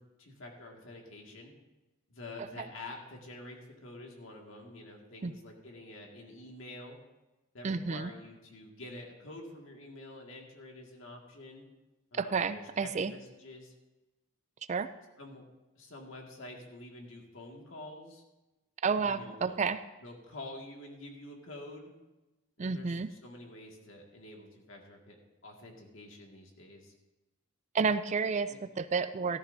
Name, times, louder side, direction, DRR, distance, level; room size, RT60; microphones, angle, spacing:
voice 1, 0.0-1.5 2.1-7.0 7.5-11.7 12.1-13.7 15.2-15.4 15.8-18.2 19.0-19.6 20.0-21.9 22.6-25.2 25.4-26.9 28.5-28.6, left 2 dB, 65° left, 0 dB, 2.0 m, -48 dB
voice 2, 7.6-8.1 12.1-13.1 14.7-14.9 18.8-19.8 22.6-23.1 27.7-29.4, right 5 dB, 35° right, 12 dB, 0.3 m, -30 dB
14.5 x 13.0 x 2.7 m, 1.1 s
head